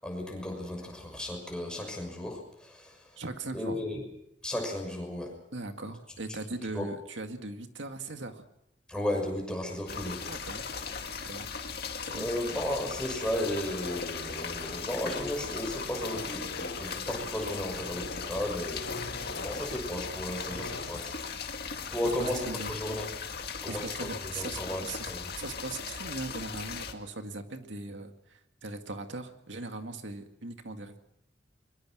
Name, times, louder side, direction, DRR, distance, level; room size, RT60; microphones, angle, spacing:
voice 1, 0.0-3.1 3.5-4.0 4.4-5.3 6.7-6.9 8.9-10.4 12.1-23.1 23.6-23.9 24.3-25.3, left 1 dB, 5° left, 1 dB, 6.3 m, -35 dB
voice 2, 3.2-3.8 5.5-8.4 10.3-10.7 11.2-11.5 12.1-12.3 22.2-22.7 23.7-25.1 25.4-31.0, right 2 dB, 85° right, 6 dB, 2.1 m, -39 dB
sound 1, 9.9-26.9, left 5 dB, 60° left, 2.0 m, -38 dB
sound 2, 13.3-21.1, left 2 dB, 85° left, 3.9 m, -44 dB
23.5 x 22.0 x 6.4 m, 0.82 s
head